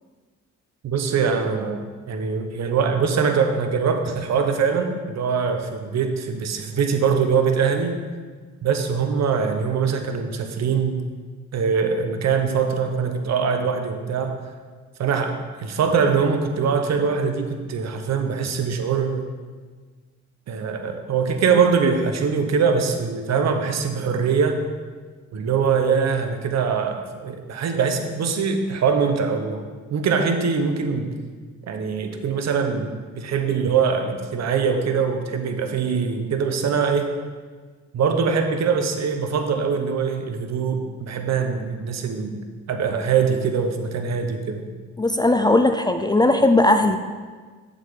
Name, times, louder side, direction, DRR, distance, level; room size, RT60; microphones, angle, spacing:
voice 1, 0.8-8.0 8.6-11.0 11.5-14.4 15.0-19.3 20.5-24.6 25.3-29.6 29.9-31.1 31.7-32.9 33.2-37.1 37.9-42.4 42.7-44.7, right 6 dB, 60° right, 6 dB, 1.0 m, -22 dB
voice 2, 45.0-47.0, left 2 dB, 15° left, 7 dB, 0.4 m, -18 dB
8.4 x 7.4 x 3.7 m, 1.5 s
cardioid pair, 90°, 30 cm